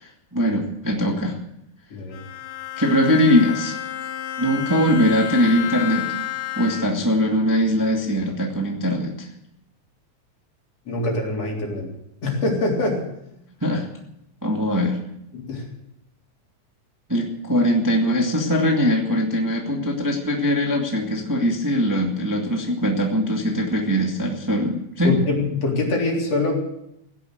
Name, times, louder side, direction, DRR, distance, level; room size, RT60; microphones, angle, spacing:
voice 1, 0.0-1.4 2.8-3.8 4.4-6.1 6.5-9.3 13.6-13.9 14.4-15.0 17.1-25.2, equal, 5° right, 0 dB, 1.8 m, -21 dB
voice 2, 1.9-2.2 10.9-11.9 12.2-13.0 15.3-15.6 25.0-26.6, left 2 dB, 55° left, -1 dB, 4.9 m, -24 dB
Bowed string instrument, 2.1-7.2, left 13 dB, 75° left, 2.4 m, -31 dB
16.5 x 11.0 x 8.1 m, 0.81 s
omnidirectional pair, 3.4 m